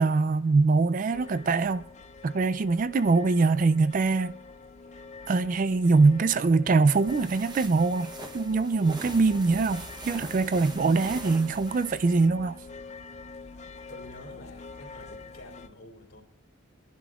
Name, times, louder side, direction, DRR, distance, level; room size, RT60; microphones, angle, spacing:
voice 1, 0.0-1.8 2.2-4.4 5.3-12.6, right 3 dB, 40° right, 0.3 m, -23 dB
sound 1, 1.1-15.7, left 4 dB, 35° left, 0.5 m, -45 dB
sound 2, 6.9-12.3, right 3 dB, 20° right, 0.8 m, -43 dB
voice 2, 13.9-16.2, left 1 dB, 70° left, 3.0 m, -48 dB
24.5 x 11.0 x 2.4 m
head